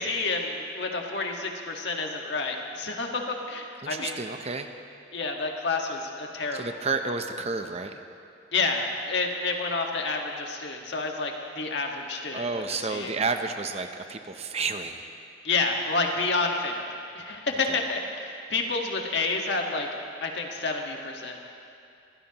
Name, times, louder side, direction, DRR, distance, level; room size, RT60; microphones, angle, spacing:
voice 1, 0.0-4.2 5.1-6.6 8.5-12.5 12.9-13.1 15.4-19.9 20.2-21.4, left 3 dB, 70° left, 1 dB, 1.6 m, -29 dB
voice 2, 3.8-4.7 6.5-8.0 12.3-15.1 17.7-17.8, right 4 dB, 35° right, 7 dB, 0.7 m, -31 dB
24.5 x 15.5 x 3.0 m, 2.5 s
head